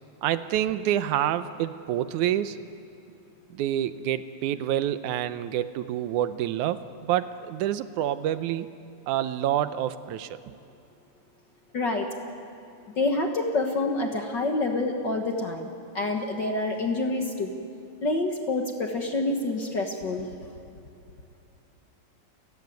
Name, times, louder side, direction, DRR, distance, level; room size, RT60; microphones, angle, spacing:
voice 1, 0.2-2.6 3.5-8.7 9.1-10.6, right 11 dB, 80° right, 12 dB, 2.2 m, -27 dB
voice 2, 11.7-12.1 12.9-17.5 18.0-20.3, left 2 dB, 45° left, 3 dB, 1.5 m, -27 dB
30.0 x 15.0 x 9.3 m, 2.8 s
omnidirectional pair, 3.5 m